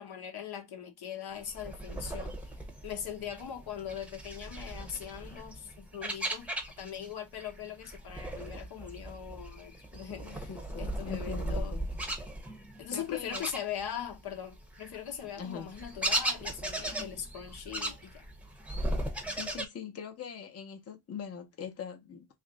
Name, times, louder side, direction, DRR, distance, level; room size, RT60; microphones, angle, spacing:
voice 1, 0.0-2.4 2.8-6.5 6.8-10.5 10.8-11.8 12.8-18.3, left 9 dB, 80° left, 0.9 m, -40 dB
sound 1, 1.4-7.1 7.4-14.2 14.5-19.7, right 1 dB, 5° right, 0.7 m, -37 dB
voice 2, 10.2-11.9 12.9-13.5 15.4-15.7 19.3-22.3, left 7 dB, 40° left, 0.7 m, -42 dB
3.1 x 2.5 x 3.8 m
wide cardioid pair, 150°, 38 cm